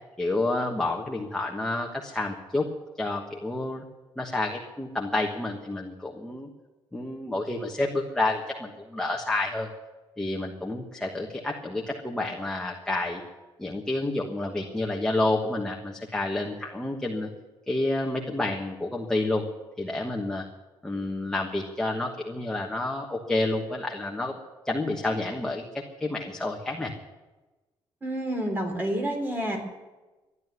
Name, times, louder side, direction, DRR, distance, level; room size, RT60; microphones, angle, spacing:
voice 1, 0.2-2.7 3.0-3.8 4.2-6.5 6.9-9.7 10.2-13.2 13.6-17.3 17.7-19.5 19.8-20.4 20.8-24.3 24.6-26.9, left 2 dB, 5° left, 0 dB, 1.3 m, -29 dB
voice 2, 28.0-29.6, right 1 dB, 20° right, 3 dB, 3.5 m, -29 dB
13.5 x 11.0 x 9.5 m, 1.2 s
cardioid pair, 155°, 10 cm